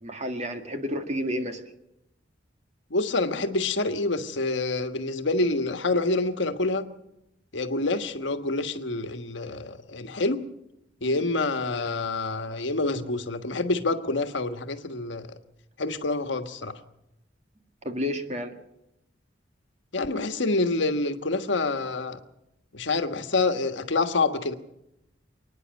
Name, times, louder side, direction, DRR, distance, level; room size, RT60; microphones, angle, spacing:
voice 1, 0.0-1.6 11.0-11.3 17.8-18.5, equal, 40° right, 6 dB, 2.0 m, -31 dB
voice 2, 2.9-6.9 7.5-10.4 11.0-15.3 15.8-16.8 19.9-22.2 22.7-24.5, left 2 dB, 70° left, 8 dB, 1.4 m, -27 dB
28.0 x 10.0 x 9.4 m, 0.85 s
head